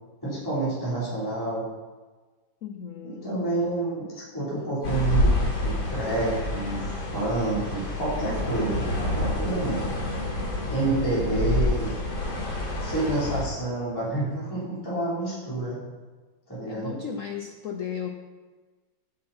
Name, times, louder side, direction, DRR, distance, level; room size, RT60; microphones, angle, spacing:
voice 1, 0.2-1.7 3.0-5.3 5.6-9.9 10.7-11.9 12.8-15.8 16.5-16.9, right 2 dB, 10° left, -10 dB, 4.1 m, -28 dB
voice 2, 2.6-3.4 16.7-18.1, left 8 dB, 55° left, 4 dB, 1.0 m, -35 dB
sound 1, 4.8-13.4, left 1 dB, 80° left, 4.3 m, -28 dB
14.5 x 8.7 x 4.5 m, 1.3 s
omnidirectional pair, 2.1 m